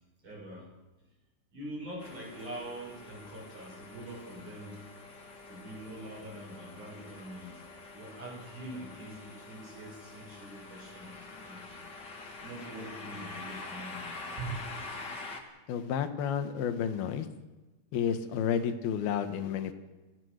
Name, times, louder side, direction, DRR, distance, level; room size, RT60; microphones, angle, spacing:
voice 1, 0.2-0.7 1.5-4.8 5.4-7.6 7.9-11.8 12.4-14.1 14.4-14.6, right 1 dB, 45° right, -3 dB, 7.8 m, -44 dB
sound 1, 2.0-15.4, left 3 dB, 30° left, 2.4 m, -46 dB
voice 2, 15.7-17.3 17.9-19.7, left 8 dB, 65° left, 8 dB, 3.2 m, -31 dB
28.0 x 17.0 x 6.6 m, 1.1 s
omnidirectional pair, 5.0 m